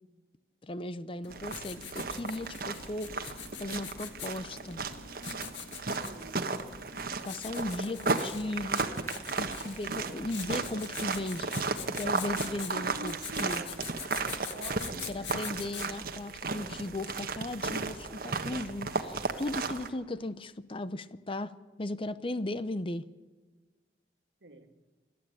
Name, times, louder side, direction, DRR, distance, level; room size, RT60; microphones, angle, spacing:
voice 1, 0.6-4.8 7.2-8.8 9.4-11.5 11.8-13.6 15.1-21.5 21.8-23.0, left 1 dB, 30° left, 14 dB, 0.7 m, -36 dB
Writing, 1.2-16.2, left 8 dB, 90° left, 1.7 m, -45 dB
sound 1, 1.3-19.9, right 4 dB, 55° right, 1.4 m, -35 dB
voice 2, 6.0-6.4 12.7-13.9 14.5-15.4 24.4-24.7, right 1 dB, 80° right, 7 dB, 1.9 m, -45 dB
28.5 x 11.0 x 8.7 m, 1.3 s
head